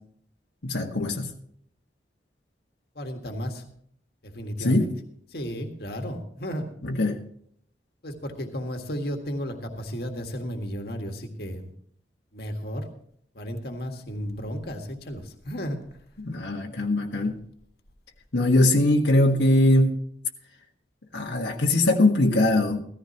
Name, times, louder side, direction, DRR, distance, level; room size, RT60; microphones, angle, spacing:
voice 1, 0.6-1.3 4.6-4.9 6.8-7.2 16.2-17.4 18.3-19.9 21.1-22.8, left 1 dB, 85° left, 0 dB, 1.5 m, -21 dB
voice 2, 2.9-3.6 4.2-4.9 5.3-6.7 8.0-11.7 12.3-12.9 13.3-15.8, equal, 60° left, 4 dB, 1.8 m, -33 dB
16.5 x 14.5 x 2.9 m, 0.64 s
head